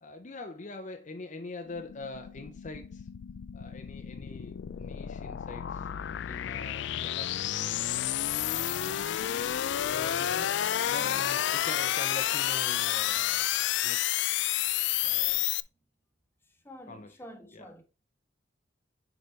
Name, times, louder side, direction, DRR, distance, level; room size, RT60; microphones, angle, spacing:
voice 1, 0.0-3.1 3.5-5.9 6.3-7.6 8.5-8.9 9.9-13.5 13.8-14.1 15.0-15.5 16.9-17.1 17.5-17.6, left 3 dB, 40° left, 0.7 m, -44 dB
sound 1, 1.7-15.6, left 12 dB, 65° left, 0.3 m, -30 dB
voice 2, 11.0-11.3 16.4-17.8, equal, 10° left, 1.2 m, -48 dB
6.7 x 5.0 x 4.5 m
head